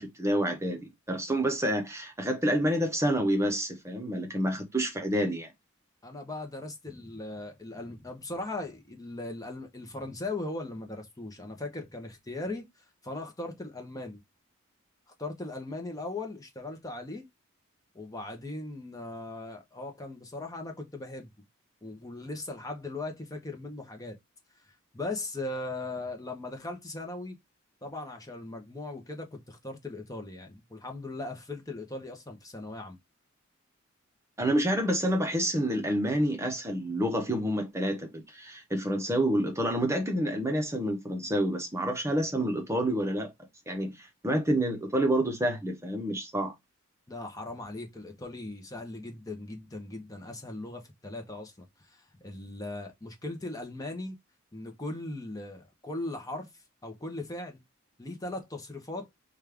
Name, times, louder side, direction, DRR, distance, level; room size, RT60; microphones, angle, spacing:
voice 1, 0.0-5.5 34.4-43.3 43.7-46.5, right 1 dB, 15° right, 0.9 m, -28 dB
voice 2, 6.0-12.6 13.0-14.2 15.2-17.3 17.9-21.3 21.8-24.2 24.9-27.4 27.8-33.0 47.1-51.5 51.8-54.2 54.5-56.5 56.8-57.6 58.0-59.1, left 2 dB, 15° left, 0.9 m, -38 dB
5.2 x 2.4 x 3.4 m
head